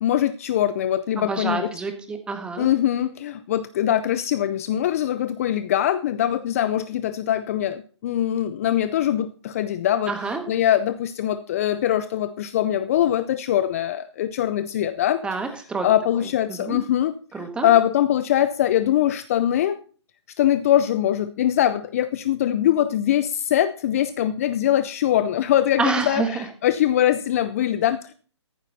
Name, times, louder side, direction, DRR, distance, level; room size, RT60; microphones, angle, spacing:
voice 1, 0.0-1.7 2.6-15.2 15.8-19.8 20.4-28.1, left 11 dB, 30° left, 14 dB, 0.5 m, -22 dB
voice 2, 1.2-2.7 10.1-10.4 15.2-15.9 16.5-16.8 17.3-17.7 25.8-26.4, right 4 dB, 5° right, 6 dB, 1.6 m, -27 dB
14.0 x 11.5 x 4.1 m, 0.41 s
hypercardioid pair, 150°, 15 cm